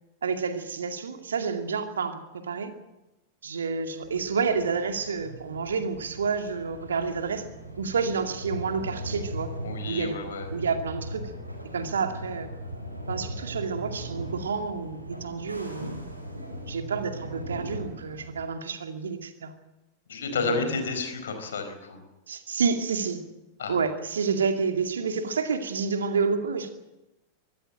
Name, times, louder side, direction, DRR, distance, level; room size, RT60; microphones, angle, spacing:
voice 1, 0.2-2.7 3.4-7.4 7.8-9.5 9.9-10.2 10.5-11.3 11.7-12.5 13.1-16.0 16.7-19.6 20.3-20.7 22.3-23.2 23.7-26.7, right 5 dB, 70° right, 6 dB, 2.3 m, -29 dB
sound 1, 4.0-18.4, right 1 dB, 85° right, 4.6 m, -39 dB
voice 2, 9.6-10.5 20.1-22.0 23.6-23.8, left 4 dB, 65° left, 7 dB, 4.6 m, -31 dB
24.0 x 14.5 x 8.9 m, 0.99 s
figure-of-eight pair, 90°, 0 cm